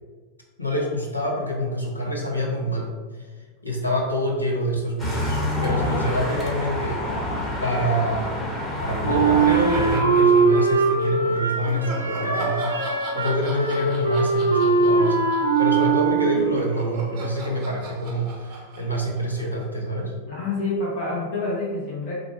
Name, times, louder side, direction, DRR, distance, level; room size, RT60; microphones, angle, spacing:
voice 1, 0.6-3.3 3.6-7.0 7.6-8.4 8.8-15.3 15.6-20.1, equal, 85° left, -2 dB, 0.7 m, -26 dB
sound 1, 5.0-10.0, left 1 dB, 10° left, 1.0 m, -27 dB
Wind instrument woodwind instrument, 9.0-16.6, right 4 dB, 80° right, 0.4 m, -21 dB
sound 2, 9.4-11.1 11.6-19.9, right 3 dB, 40° right, 0.6 m, -37 dB
voice 2, 16.0-16.4 20.2-22.1, left 2 dB, 55° left, -5 dB, 0.8 m, -28 dB
3.7 x 2.2 x 3.2 m, 1.4 s
figure-of-eight pair, 90°, 0 cm